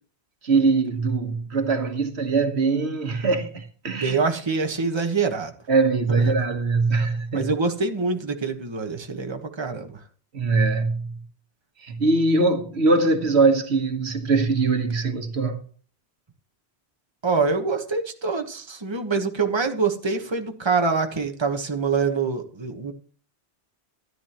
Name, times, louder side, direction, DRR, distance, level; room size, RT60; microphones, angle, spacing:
voice 1, 0.4-4.2 5.7-7.5 10.3-11.2 11.8-15.6, right 3 dB, 80° right, 1.6 m, -22 dB
voice 2, 3.9-5.5 6.1-6.2 7.3-10.0 17.2-22.9, right 4 dB, 25° right, 1.3 m, -25 dB
13.0 x 11.0 x 3.0 m
omnidirectional pair, 1.1 m